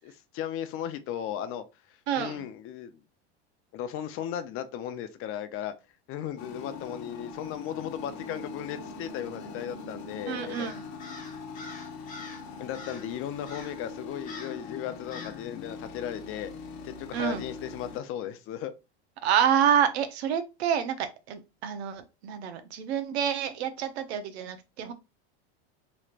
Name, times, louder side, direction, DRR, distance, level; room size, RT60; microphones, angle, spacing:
voice 1, 0.3-3.0 3.7-5.7 6.1-10.7 11.2-11.3 12.6-16.5 16.8-18.7, left 10 dB, 40° left, 0.6 m, -36 dB
voice 2, 2.1-2.5 10.3-10.8 17.1-17.5 19.2-24.9, right 8 dB, 80° right, 0.8 m, -28 dB
sound 1, 6.4-18.0, left 5 dB, 75° left, 0.9 m, -42 dB
sound 2, 8.0-10.7, right 2 dB, 30° right, 1.4 m, -47 dB
Crow, 10.5-12.4 12.7-13.1 13.4-13.8 14.2-14.6 15.1-15.4, left 3 dB, 25° left, 1.1 m, -45 dB
3.1 x 3.0 x 2.4 m
supercardioid pair, 115°, 32 cm